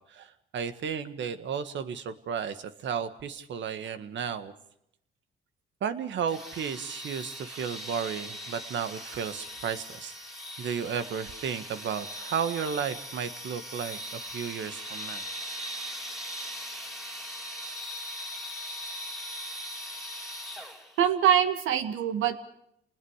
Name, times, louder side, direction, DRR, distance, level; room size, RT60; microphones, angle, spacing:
voice 1, 0.5-4.5 5.8-10.1 10.6-15.2, right 7 dB, 70° right, 11 dB, 1.7 m, -33 dB
sound 1, 6.3-21.0, equal, ahead, 3.7 m, -40 dB
voice 2, 21.0-22.4, right 9 dB, 85° right, 9 dB, 1.9 m, -24 dB
29.0 x 20.0 x 5.0 m, 0.75 s
cardioid pair, 90°, 20 cm